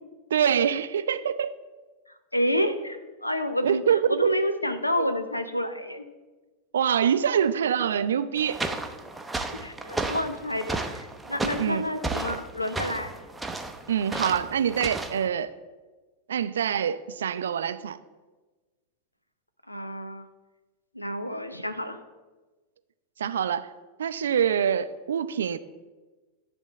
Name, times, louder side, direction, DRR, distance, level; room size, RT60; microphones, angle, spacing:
voice 1, 0.3-1.5 3.6-4.3 6.7-8.6 11.6-11.8 13.9-15.5 16.3-18.0 23.2-23.7 24.0-25.6, right 8 dB, 65° right, 13 dB, 0.4 m, -25 dB
voice 2, 2.3-6.0 9.5-13.1 19.7-20.3 20.9-22.0, left 1 dB, 85° left, 10 dB, 0.6 m, -29 dB
sound 1, 8.4-15.3, right 2 dB, 5° right, 0.6 m, -33 dB
10.0 x 3.6 x 6.6 m, 1.2 s
figure-of-eight pair, 90°, 0 cm